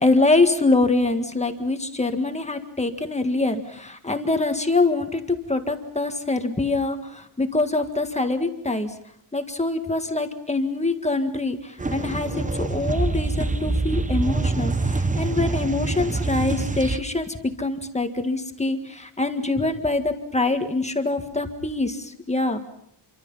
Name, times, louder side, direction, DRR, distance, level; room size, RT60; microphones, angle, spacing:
voice 1, 0.0-8.9 9.3-11.6 11.9-22.6, left 2 dB, 15° left, 6 dB, 1.8 m, -24 dB
sound 1, 11.8-17.0, right 3 dB, 15° right, 0.9 m, -25 dB
28.0 x 24.5 x 5.7 m, 0.69 s
wide cardioid pair, 170°, 44 cm